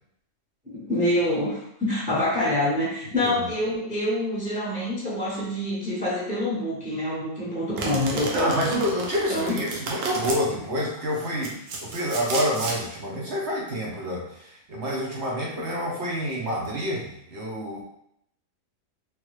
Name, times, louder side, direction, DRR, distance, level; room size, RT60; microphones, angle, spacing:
voice 1, 0.7-8.7 9.3-9.6, left 1 dB, 5° right, -7 dB, 0.7 m, -26 dB
Domestic sounds home sounds, 7.8-10.4 11.1-12.8, right 3 dB, 75° right, 1.1 m, -32 dB
voice 2, 8.3-17.8, equal, 55° right, -3 dB, 0.9 m, -28 dB
3.2 x 2.3 x 3.1 m, 0.74 s
omnidirectional pair, 1.5 m